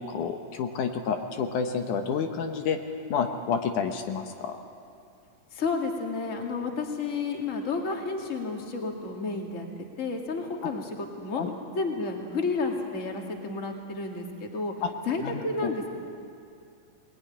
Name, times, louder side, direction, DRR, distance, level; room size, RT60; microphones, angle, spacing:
voice 1, 0.1-2.8 3.1-4.6 10.6-10.7 11.4-11.5 14.8-14.9 15.2-15.7, left 6 dB, 75° left, 5 dB, 2.7 m, -29 dB
voice 2, 5.5-9.7 10.0-11.5 11.7-14.7 15.0-15.9, left 3 dB, 25° left, 2 dB, 2.2 m, -31 dB
21.5 x 21.0 x 10.0 m, 2.5 s
omnidirectional pair, 3.6 m